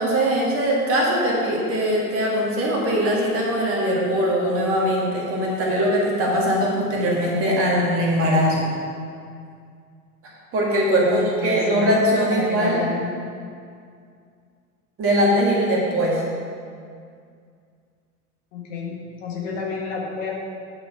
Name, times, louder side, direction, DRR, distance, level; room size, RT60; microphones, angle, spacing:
voice 1, 0.0-8.7 10.5-12.8 15.0-16.2, equal, 30° right, -3 dB, 1.9 m, -21 dB
voice 2, 11.0-11.9 12.3-13.1 18.5-20.3, left 5 dB, 50° left, -2 dB, 1.8 m, -30 dB
8.7 x 4.9 x 6.1 m, 2.2 s
figure-of-eight pair, 90°, 46 cm